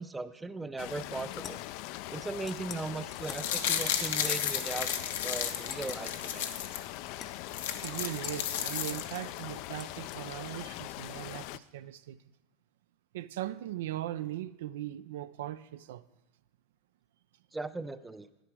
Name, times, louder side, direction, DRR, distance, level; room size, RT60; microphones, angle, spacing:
voice 1, 0.0-1.6 2.1-4.9 5.2-6.5 17.5-18.3, right 3 dB, 10° right, 0.5 m, -38 dB
sound 1, 0.8-11.6, left 16 dB, 60° left, 0.3 m, -42 dB
sound 2, 1.4-1.9 2.5-2.8 3.1-3.5 3.8-4.0 4.2-5.0 5.7-6.0 6.7-6.8 7.2-7.3 7.8-9.3 9.8-10.2, left 7 dB, 35° left, 0.7 m, -47 dB
sound 3, 3.1-6.8 7.2-7.3 7.5-9.4 9.7-9.8, left 9 dB, 80° left, 0.8 m, -33 dB
voice 2, 7.8-12.2 13.1-16.0, right 13 dB, 80° right, 0.3 m, -39 dB
10.0 x 9.0 x 4.7 m
hypercardioid pair, 105°, 0 cm